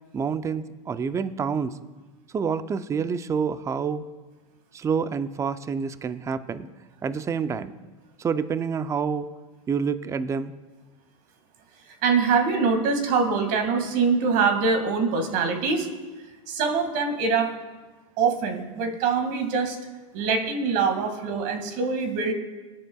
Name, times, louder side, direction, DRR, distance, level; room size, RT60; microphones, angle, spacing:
voice 1, 0.1-1.8 2.3-4.1 4.7-6.7 7.0-7.7 8.2-9.3 9.7-10.5, right 6 dB, 15° right, 13 dB, 0.5 m, -27 dB
voice 2, 12.0-15.9 16.5-17.5 18.2-19.8 20.1-22.3, right 5 dB, 50° right, 6 dB, 2.0 m, -24 dB
19.5 x 10.5 x 2.3 m, 1.3 s
hypercardioid pair, 110°, 18 cm